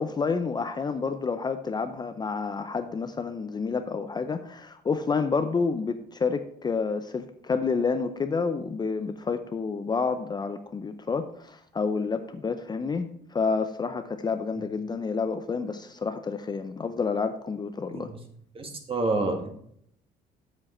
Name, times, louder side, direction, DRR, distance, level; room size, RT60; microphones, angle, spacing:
voice 1, 0.0-18.1, left 5 dB, 25° left, 9 dB, 0.5 m, -29 dB
voice 2, 18.5-19.5, right 2 dB, 35° right, 4 dB, 1.6 m, -28 dB
7.5 x 7.4 x 4.2 m, 0.67 s
cardioid pair, 110°, 17 cm